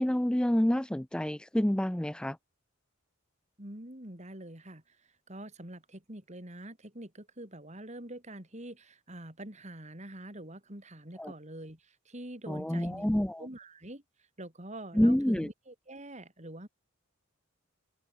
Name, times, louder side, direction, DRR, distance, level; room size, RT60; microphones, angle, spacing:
voice 1, 0.0-2.4 11.2-11.3 12.5-13.5 14.9-15.5, equal, 5° left, 0.3 m, -28 dB
voice 2, 3.6-13.1 13.4-14.0 14.4-16.7, right 1 dB, 35° right, 4.6 m, -45 dB
open air
head